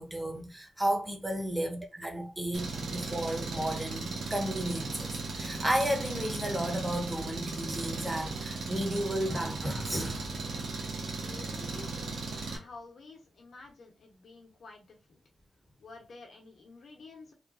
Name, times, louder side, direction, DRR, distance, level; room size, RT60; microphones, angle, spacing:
voice 1, 0.0-10.3, right 1 dB, 15° right, 0.9 m, -33 dB
Engine, 2.5-12.6, right 3 dB, 80° right, 0.9 m, -37 dB
voice 2, 11.2-12.2 12.5-15.2 15.8-17.3, left 3 dB, 70° left, 1.0 m, -50 dB
3.2 x 2.2 x 2.4 m
cardioid pair, 50°, 0 cm